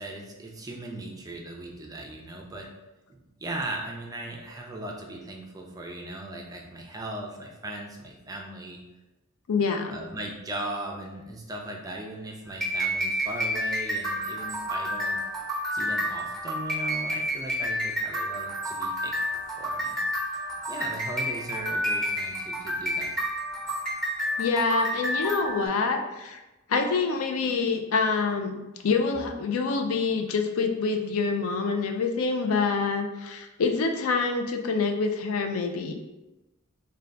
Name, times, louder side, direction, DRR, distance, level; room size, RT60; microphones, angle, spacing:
voice 1, 0.0-2.7 3.1-8.8 9.9-15.2 15.7-19.2 19.6-20.0 20.7-23.2, right 1 dB, 15° right, 0 dB, 0.4 m, -38 dB
voice 2, 9.5-10.0 24.4-26.4 26.7-28.6 28.8-35.9, left 4 dB, 75° left, 4 dB, 0.4 m, -26 dB
sound 1, 12.4-25.7, equal, 5° left, 0.9 m, -30 dB
3.7 x 2.3 x 3.3 m, 1.0 s
head